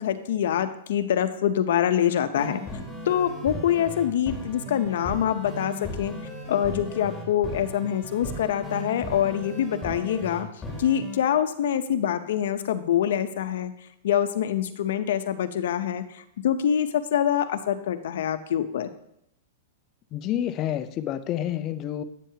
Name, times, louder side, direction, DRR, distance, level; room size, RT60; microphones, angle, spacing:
voice 1, 0.0-2.6 3.1-6.1 6.5-10.5 10.8-13.7 14.0-18.9, left 10 dB, 70° left, 11 dB, 0.7 m, -25 dB
sound 1, 2.3-11.2, left 1 dB, 5° left, 2.7 m, -37 dB
voice 2, 20.1-22.0, left 11 dB, 30° left, 11 dB, 0.5 m, -28 dB
9.1 x 8.9 x 2.8 m, 0.77 s
hypercardioid pair, 150°, 0 cm